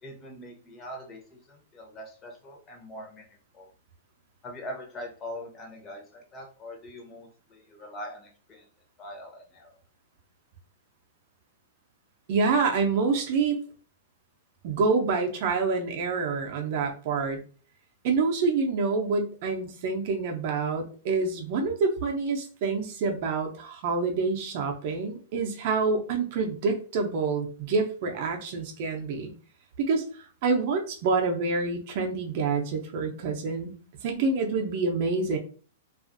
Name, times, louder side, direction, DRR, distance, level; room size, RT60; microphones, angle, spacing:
voice 1, 0.0-3.3 3.5-3.7 4.4-8.7 9.0-9.7, equal, 25° left, 0 dB, 0.7 m, -42 dB
voice 2, 12.3-13.6 14.6-17.4 18.0-29.3 29.8-33.8 34.0-35.4, right 4 dB, 50° right, 3 dB, 0.5 m, -27 dB
2.5 x 2.4 x 2.5 m, 0.40 s
hypercardioid pair, 140°, 0 cm